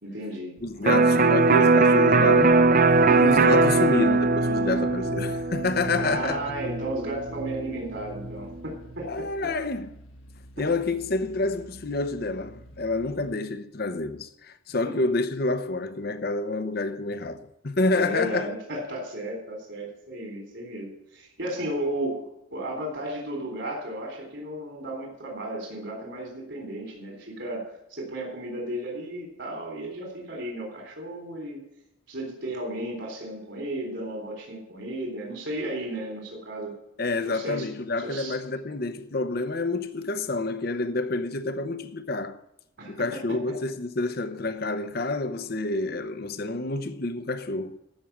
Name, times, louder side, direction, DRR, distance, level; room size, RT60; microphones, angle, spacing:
voice 1, 0.0-0.6 3.1-3.2 5.9-9.5 10.6-10.7 17.9-22.2 22.5-31.6 32.1-36.8 37.2-37.7 38.0-38.4 42.8-42.9 43.3-43.4, right 1 dB, 60° right, 3.8 m, -34 dB
voice 2, 0.6-2.6 3.2-6.4 9.0-9.9 10.6-18.5 37.0-42.4 42.9-47.8, left 2 dB, 50° left, 0.8 m, -28 dB
Electric guitar, 0.9-8.5, right 3 dB, 40° right, 0.5 m, -21 dB
sound 1, 2.2-13.3, equal, 80° left, 1.6 m, -49 dB
14.5 x 6.4 x 7.4 m
head